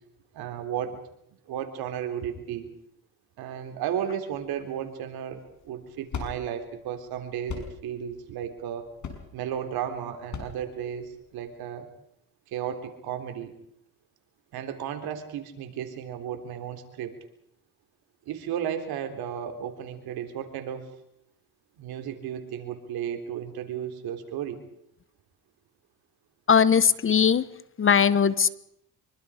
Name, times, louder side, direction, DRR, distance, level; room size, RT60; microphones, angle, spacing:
voice 1, 0.3-1.0 1.5-2.7 3.4-8.9 9.3-11.9 12.5-13.5 14.5-17.1 18.3-20.9 21.8-24.6, right 9 dB, 80° right, 6 dB, 3.6 m, -34 dB
sound 1, 5.3-11.5, left 6 dB, 50° left, 5.7 m, -40 dB
voice 2, 26.5-27.4 27.8-28.5, left 7 dB, 35° left, 16 dB, 1.1 m, -20 dB
25.0 x 24.0 x 5.1 m, 0.76 s
cardioid pair, 105°, 37 cm